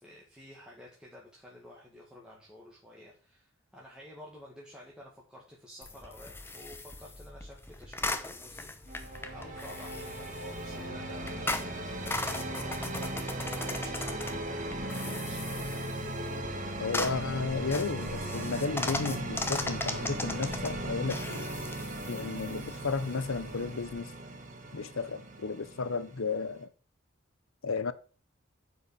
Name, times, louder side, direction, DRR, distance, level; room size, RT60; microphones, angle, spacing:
voice 1, 0.0-15.6, left 1 dB, 5° right, 1.7 m, -51 dB
sound 1, 5.8-24.0, left 2 dB, 10° left, 0.8 m, -39 dB
sound 2, 8.9-26.6, right 1 dB, 40° right, 1.4 m, -38 dB
sound 3, 9.0-14.2, left 1 dB, 40° left, 1.2 m, -51 dB
voice 2, 16.8-21.5 22.1-24.1 24.7-26.7 27.6-27.9, left 4 dB, 85° left, 0.8 m, -33 dB
9.0 x 4.9 x 6.8 m
head